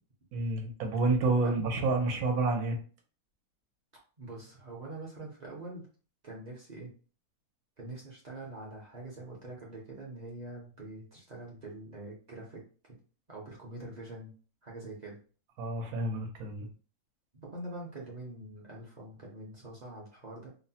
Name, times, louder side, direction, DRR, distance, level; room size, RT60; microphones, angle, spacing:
voice 1, 0.3-2.8 15.6-16.7, right 3 dB, 80° right, 3 dB, 1.2 m, -29 dB
voice 2, 4.2-5.9 6.2-6.9 7.8-12.6 12.9-13.0 13.3-14.3 14.6-15.2 17.4-20.5, right 2 dB, 50° right, -3 dB, 0.5 m, -44 dB
3.0 x 2.0 x 2.7 m, 0.39 s
omnidirectional pair, 1.6 m